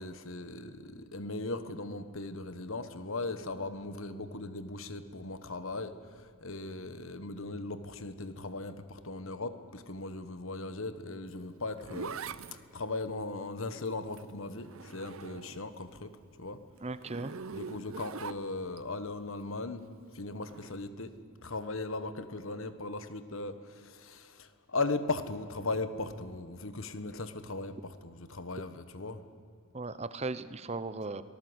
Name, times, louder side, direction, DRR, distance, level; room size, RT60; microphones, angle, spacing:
voice 1, 0.0-12.2 12.5-16.1 16.4-16.6 17.5-19.9 20.1-21.1 21.4-29.2, left 3 dB, 60° left, 11 dB, 1.4 m, -38 dB
Zipper (clothing), 11.3-15.8 16.1-18.8 20.4-20.7, right 5 dB, 65° right, 0.8 m, -44 dB
voice 2, 16.8-17.4 29.7-31.2, right 3 dB, 30° right, 14 dB, 0.8 m, -37 dB
25.0 x 19.0 x 8.1 m, 2.3 s
head